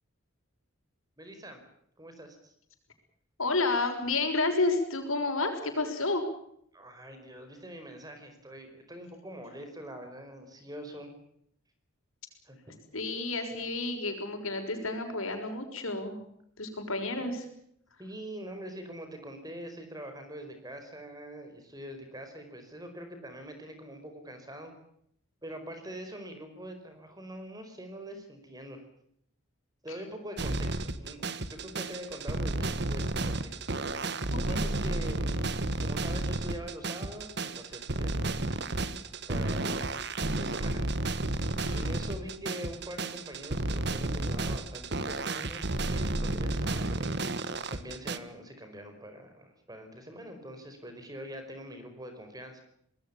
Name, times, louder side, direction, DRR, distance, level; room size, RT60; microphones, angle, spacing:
voice 1, 1.2-1.6 2.0-2.5 6.7-11.1 12.4-12.6 17.2-17.3 18.0-24.7 25.4-28.8 29.8-33.6 34.3-35.5 35.8-38.4 39.3-40.8 41.7-47.1 47.7-52.6, equal, 20° right, 7 dB, 5.0 m, -44 dB
voice 2, 3.4-6.2 12.9-16.2 16.6-17.4 29.9-30.0 34.5-34.6 41.4-41.9, left 3 dB, 85° left, 5 dB, 6.3 m, -30 dB
sound 1, 30.4-48.2, right 2 dB, 55° right, 1.5 m, -32 dB
26.0 x 20.0 x 7.2 m, 0.70 s
head